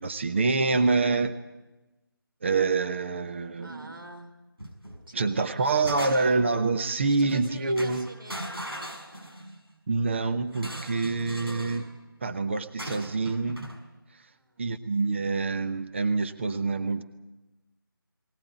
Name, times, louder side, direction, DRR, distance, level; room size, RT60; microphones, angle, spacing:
voice 1, 0.0-1.4 2.4-3.9 5.1-8.1 9.9-11.9 12.2-13.7 14.6-17.0, right 3 dB, 30° right, 9 dB, 1.0 m, -26 dB
voice 2, 3.6-4.4 5.1-6.4 7.1-8.6 14.2-14.7, right 2 dB, 70° right, 4 dB, 4.4 m, -46 dB
sound 1, 4.6-5.0 5.4-6.5 7.3-7.5 7.8-9.6 10.5-11.9 12.8-13.8, right 1 dB, 90° right, 6.6 m, -39 dB
19.5 x 19.5 x 9.2 m, 1.1 s
figure-of-eight pair, 165°, 12 cm